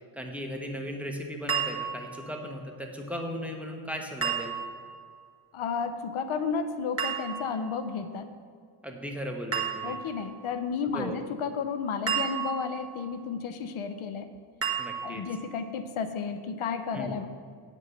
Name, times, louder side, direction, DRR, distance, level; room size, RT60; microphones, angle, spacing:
voice 1, 0.1-4.5 8.8-10.0 10.9-11.2 14.8-15.2 16.9-17.1, equal, 5° right, 1 dB, 1.3 m, -37 dB
sound 1, 1.5-2.2 4.2-4.9 7.0-7.7 9.5-10.2 12.1-12.9 14.6-15.3, right 7 dB, 30° right, 1.4 m, -32 dB
voice 2, 5.5-8.3 9.8-14.3 15.0-17.3, left 5 dB, 85° left, 9 dB, 0.7 m, -32 dB
9.5 x 5.3 x 6.5 m, 2.1 s
cardioid pair, 65°, 48 cm